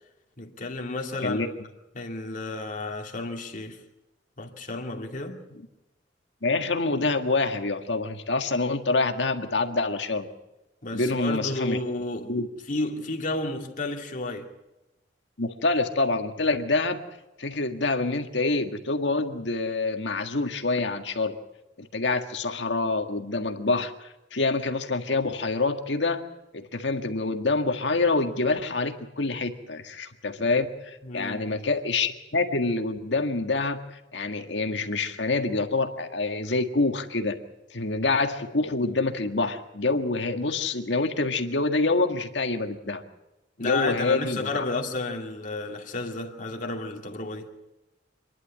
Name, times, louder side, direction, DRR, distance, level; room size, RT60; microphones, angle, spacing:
voice 1, 0.4-1.4 1.9-3.8 4.4-5.4 10.8-12.4 12.7-14.5 31.0-31.5 43.6-47.5, left 2 dB, 45° left, 2.4 m, -32 dB
voice 2, 6.4-10.3 10.9-11.8 12.3-12.5 15.4-17.0 17.4-21.4 21.8-26.2 26.5-37.4 37.7-43.0 43.6-44.6, left 3 dB, 75° left, 1.8 m, -26 dB
26.5 x 11.0 x 9.8 m
head